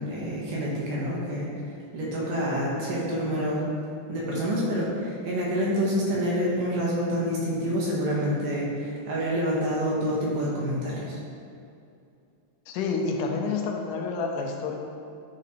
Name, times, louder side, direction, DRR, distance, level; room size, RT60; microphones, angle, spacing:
voice 1, 0.0-1.5 1.9-3.6 4.1-11.2, equal, 85° right, -5 dB, 3.0 m, -27 dB
voice 2, 12.7-14.8, left 4 dB, 85° left, 2 dB, 2.2 m, -29 dB
9.3 x 4.2 x 4.0 m, 2.5 s
omnidirectional pair, 3.6 m